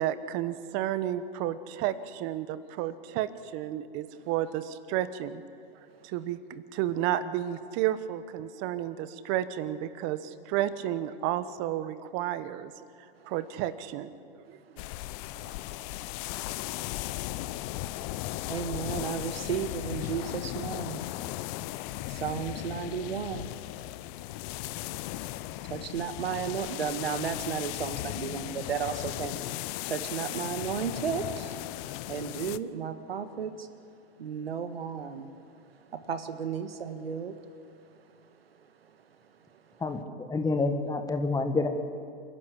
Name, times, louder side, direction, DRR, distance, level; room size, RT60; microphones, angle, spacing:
voice 1, 0.0-5.4 6.0-12.7 13.2-14.1 14.5-14.6 15.4-15.5, right 12 dB, 40° right, 13 dB, 1.2 m, -32 dB
sound 1, 14.8-32.6, left 16 dB, 40° left, 0.6 m, -36 dB
voice 2, 18.5-21.1 22.1-23.5 24.7-24.9 25.6-29.4 29.8-31.6 32.1-33.7 34.2-35.3 35.9-37.4, right 7 dB, 85° right, 10 dB, 1.6 m, -34 dB
voice 3, 39.8-41.7, left 3 dB, 10° left, 7 dB, 1.6 m, -28 dB
27.5 x 12.0 x 8.5 m, 2.3 s
hypercardioid pair, 120°, 29 cm